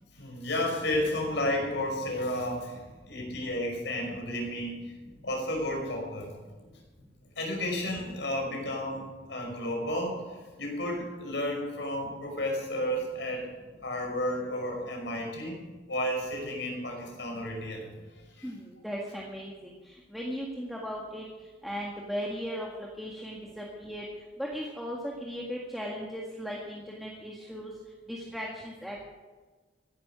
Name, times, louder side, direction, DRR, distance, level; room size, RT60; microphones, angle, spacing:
voice 1, 0.2-4.9 5.2-6.3 7.4-10.2 10.6-13.5 13.8-15.6 15.9-17.9 18.4-18.5, left 1 dB, 70° left, 1 dB, 5.5 m, -32 dB
voice 2, 18.4-21.2 21.6-24.1 24.4-27.7 28.1-29.0, equal, ahead, -3 dB, 1.8 m, -37 dB
16.0 x 11.5 x 6.3 m, 1.3 s
head